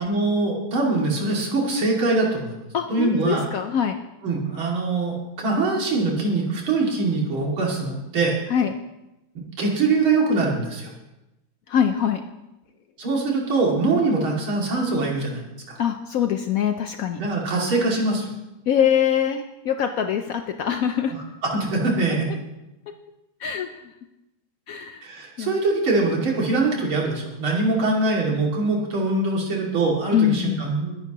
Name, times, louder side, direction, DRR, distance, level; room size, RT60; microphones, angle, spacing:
voice 1, 0.0-2.6 2.9-3.4 4.2-8.3 9.6-10.9 13.0-15.8 17.2-18.2 21.5-22.3 25.0-31.0, right 3 dB, 80° right, -2 dB, 3.3 m, -23 dB
voice 2, 2.7-4.0 8.5-8.7 11.7-12.2 15.8-17.2 18.7-21.2 23.4-23.7 24.7-25.1 25.4-25.5 30.1-30.6, left 9 dB, 75° left, 6 dB, 0.7 m, -23 dB
22.5 x 10.5 x 3.0 m, 0.96 s
omnidirectional pair, 2.3 m